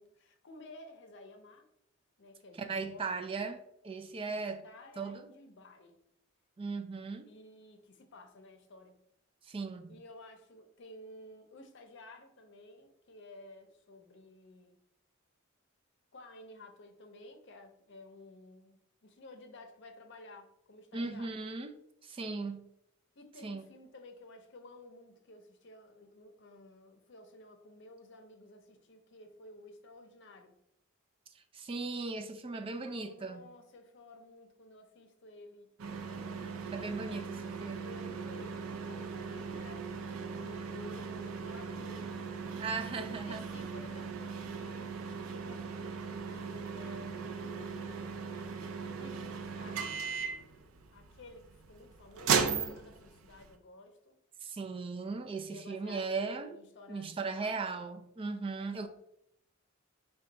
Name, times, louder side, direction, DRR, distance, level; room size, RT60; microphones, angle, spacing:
voice 1, 0.0-1.7 2.2-3.2 4.2-6.0 7.2-9.0 9.9-14.8 16.1-21.4 23.2-30.6 32.7-35.7 36.5-48.2 48.9-50.1 50.9-54.2 55.5-57.8 58.6-58.9, left 2 dB, 60° left, 0.6 m, -53 dB
voice 2, 2.6-4.6 5.0-5.3 6.6-7.3 9.4-10.0 20.9-21.7 22.0-22.6 23.4-23.6 31.3-33.5 36.7-37.9 42.6-43.4 54.4-56.6 56.9-58.9, right 4 dB, 25° right, 0.3 m, -38 dB
sound 1, 35.8-53.5, right 5 dB, 90° right, 0.4 m, -38 dB
4.4 x 2.3 x 3.8 m
head